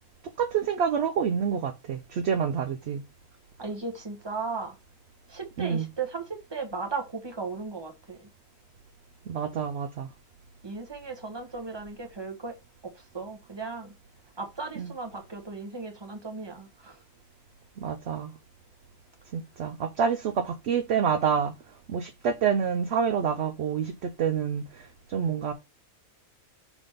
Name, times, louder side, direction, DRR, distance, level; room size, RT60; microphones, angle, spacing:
voice 1, 0.4-3.0 5.6-5.9 9.3-10.1 14.8-14.9 17.8-18.3 19.3-21.5 21.9-25.5, right 7 dB, 65° right, 0.7 m, -27 dB
voice 2, 3.6-4.7 5.3-8.3 10.6-12.6 12.8-13.9 14.4-17.0, right 4 dB, 20° right, 1.2 m, -36 dB
6.0 x 3.6 x 5.0 m
omnidirectional pair, 1.5 m